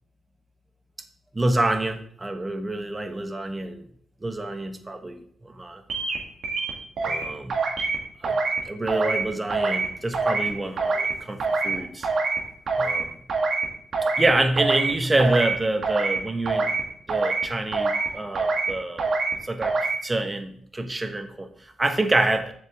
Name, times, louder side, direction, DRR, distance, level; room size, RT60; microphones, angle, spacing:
voice 1, 1.3-3.9 4.2-5.8 7.0-7.5 8.2-8.4 8.6-12.4 12.8-13.2 14.0-16.7 17.1-19.1 19.4-19.8 20.0-22.5, right 2 dB, 25° right, 7 dB, 1.2 m, -27 dB
sound 1, 5.9-6.2 6.4-7.2 7.5-8.0 8.2-8.6 8.9-9.2 9.5-9.9 10.1-10.5 10.8-11.1 11.4-11.7 12.0-12.4 12.7-13.0 13.3-13.6 13.9-14.3 14.6-14.9 15.2-15.5 15.8-16.2 16.4-16.8 17.1-17.4 17.7-18.1 18.3-18.7 19.0-19.3 19.6-20.0, right 3 dB, 65° right, 2.0 m, -25 dB
7.7 x 6.5 x 3.6 m, 0.62 s
supercardioid pair, 60°, 0 cm